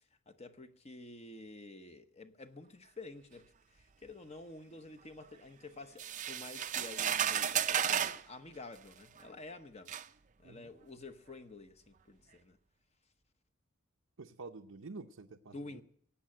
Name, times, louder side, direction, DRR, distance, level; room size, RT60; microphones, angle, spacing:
voice 1, 0.3-3.5 3.7-10.0 10.4-12.6 15.5-15.8, left 2 dB, 30° left, 0.9 m, -50 dB
sound 1, 6.0-8.2 9.2-9.3 9.9-10.1, right 9 dB, 35° right, 0.5 m, -33 dB
voice 2, 14.2-15.8, right 3 dB, 90° right, 0.8 m, -48 dB
17.0 x 8.6 x 9.0 m
head